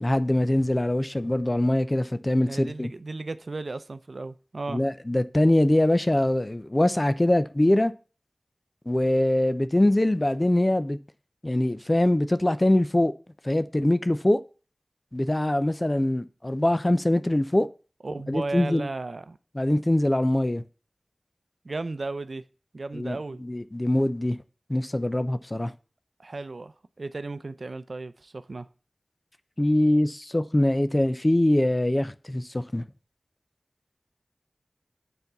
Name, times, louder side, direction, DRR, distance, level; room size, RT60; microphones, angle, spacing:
voice 1, 0.0-2.9 4.7-7.9 8.9-11.0 11.4-13.1 13.4-14.4 15.1-17.7 18.3-18.9 19.5-20.6 22.9-24.4 24.7-25.7 29.6-32.8, left 1 dB, 30° left, 0.7 m, -23 dB
voice 2, 2.4-4.8 18.0-19.4 21.6-22.4 22.7-23.4 26.2-28.7, right 3 dB, 75° right, 0.6 m, -35 dB
8.3 x 4.4 x 6.7 m
wide cardioid pair, 50°, 0 cm